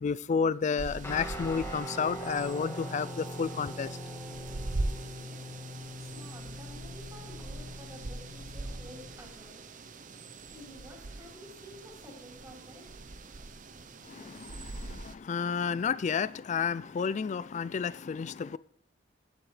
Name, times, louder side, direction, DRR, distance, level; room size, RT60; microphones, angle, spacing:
voice 1, 0.0-4.0 14.1-18.6, left 6 dB, 40° left, 0.3 m, -31 dB
sound 1, 0.8-15.2, right 2 dB, 45° right, 0.7 m, -42 dB
Guitar, 1.0-9.2, left 1 dB, 15° left, 1.8 m, -42 dB
voice 2, 5.7-9.6 10.5-13.1, equal, 20° right, 4.0 m, -51 dB
16.0 x 7.8 x 3.2 m
head